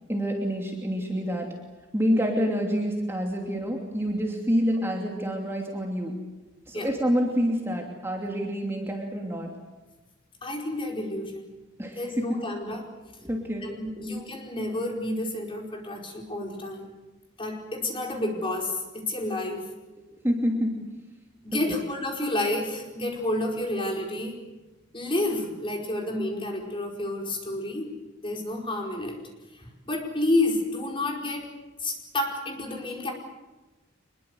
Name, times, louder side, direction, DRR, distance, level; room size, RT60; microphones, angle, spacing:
voice 1, 0.1-1.5 1.9-6.1 6.7-9.5 11.8-12.4 13.2-14.0 20.2-20.8 21.5-21.8, equal, 15° right, 1 dB, 2.9 m, -27 dB
voice 2, 10.4-11.4 12.0-12.9 13.6-16.9 17.4-19.6 21.4-24.4 24.9-27.9 28.2-29.2 29.5-31.5 31.8-33.1, left 1 dB, 25° left, 1 dB, 5.0 m, -30 dB
25.0 x 22.0 x 8.1 m, 1.1 s
head